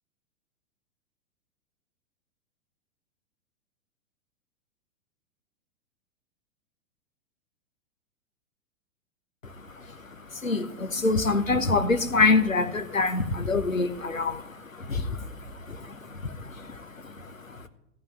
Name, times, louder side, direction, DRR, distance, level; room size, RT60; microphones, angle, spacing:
voice 1, 9.4-17.7, left 3 dB, 90° left, 9 dB, 1.0 m, -27 dB
14.0 x 5.9 x 7.5 m, 0.82 s
figure-of-eight pair, 105°, 38 cm